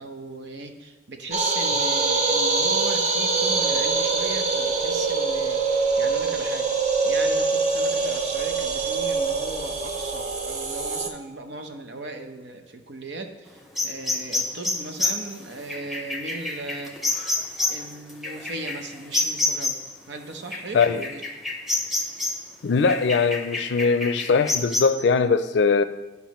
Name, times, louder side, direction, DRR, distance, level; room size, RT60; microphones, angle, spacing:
voice 1, 0.0-6.7 7.0-17.0 17.7-19.8 20.1-21.2, right 2 dB, 80° right, 0.9 m, -37 dB
sound 1, 1.3-11.1, right 4 dB, 40° right, 0.6 m, -24 dB
sound 2, 13.8-19.9 20.5-22.5 22.9-24.8, left 2 dB, ahead, 0.8 m, -28 dB
voice 2, 20.7-21.0 22.6-25.8, left 5 dB, 80° left, 0.4 m, -21 dB
11.5 x 5.3 x 3.1 m
head